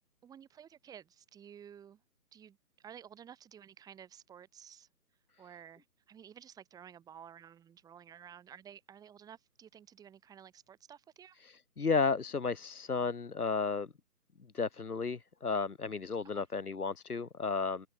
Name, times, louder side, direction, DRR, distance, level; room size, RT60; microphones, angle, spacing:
voice 1, 0.2-2.0 2.3-4.9 5.4-11.4 16.3-16.4, right 9 dB, 10° right, 5.0 m, -53 dB
voice 2, 11.4-13.9 14.5-17.9, left 4 dB, 70° left, 1.9 m, -33 dB
open air
figure-of-eight pair, 145°, 47 cm